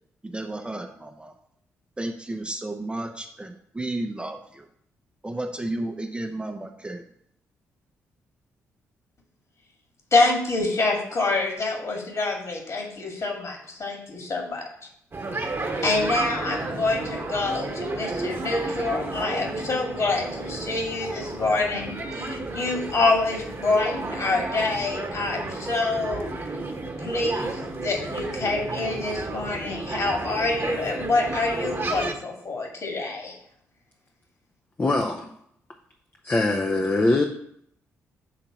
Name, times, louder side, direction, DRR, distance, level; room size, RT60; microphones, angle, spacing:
voice 1, 0.2-1.3 2.0-4.7 5.2-7.0, right 2 dB, 15° right, 4 dB, 0.7 m, -32 dB
voice 2, 10.1-14.7 15.8-26.3 27.0-33.4, left 3 dB, 45° left, 1 dB, 2.0 m, -26 dB
sound 1, 15.1-32.1, right 2 dB, 30° right, 1.3 m, -32 dB
voice 3, 34.8-35.3 36.2-37.2, left 2 dB, 25° left, 3 dB, 0.7 m, -22 dB
5.8 x 3.9 x 6.1 m, 0.70 s
figure-of-eight pair, 40°, 7 cm